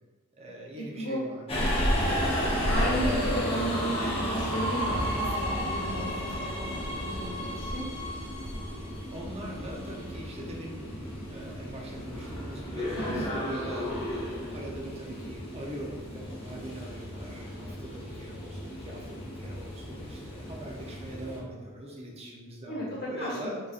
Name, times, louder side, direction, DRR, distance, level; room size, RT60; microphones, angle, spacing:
voice 1, 0.4-1.7 2.0-2.6 9.1-23.6, right 1 dB, 30° right, -2 dB, 0.6 m, -42 dB
Subway metro underground, 1.5-21.4, equal, 25° left, 0.9 m, -32 dB
voice 2, 2.7-7.8 12.9-13.3 22.7-23.5, equal, 45° left, -6 dB, 1.4 m, -34 dB
3.9 x 3.8 x 2.4 m, 1.4 s
head